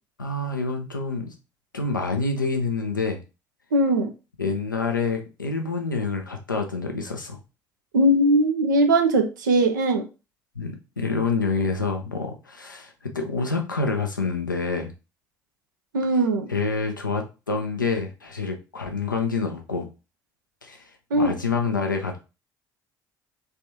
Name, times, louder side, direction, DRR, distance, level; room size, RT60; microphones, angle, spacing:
voice 1, 0.2-1.3 1.7-3.2 4.4-7.4 10.5-14.9 16.5-19.9 20.6-22.2, left 4 dB, 85° left, 3 dB, 0.6 m, -27 dB
voice 2, 3.7-4.1 7.9-10.0 15.9-16.5 21.1-21.3, right 1 dB, 75° right, 5 dB, 0.6 m, -20 dB
3.4 x 3.3 x 2.8 m, 0.30 s
figure-of-eight pair, 50°, 10 cm